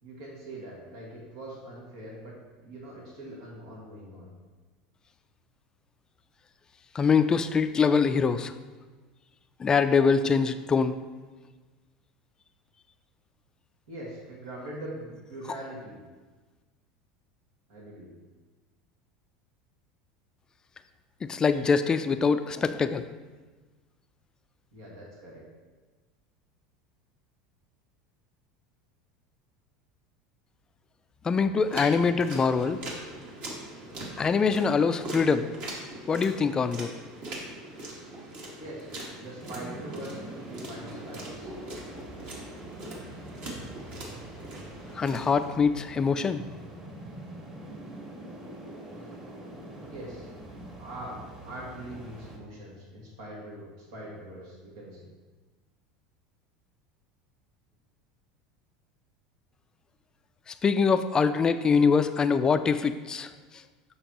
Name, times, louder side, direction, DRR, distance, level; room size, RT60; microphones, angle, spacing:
voice 1, 0.0-2.4 2.6-4.3 10.6-10.7 13.9-16.0 17.7-18.1 24.7-25.5 38.6-41.5 48.9-49.3 49.8-50.3 50.8-55.1, right 1 dB, 85° right, -4 dB, 1.9 m, -42 dB
voice 2, 6.9-8.5 9.6-10.9 21.2-23.0 31.2-32.8 34.2-35.5 36.1-36.9 44.9-46.4 60.5-63.3, left 5 dB, 25° left, 11 dB, 0.3 m, -24 dB
sound 1, 31.6-45.5, right 1 dB, 55° right, 1.9 m, -41 dB
sound 2, 39.4-52.4, right 1 dB, 30° right, 1.5 m, -44 dB
7.1 x 6.4 x 2.9 m, 1.3 s
supercardioid pair, 110°, 3 cm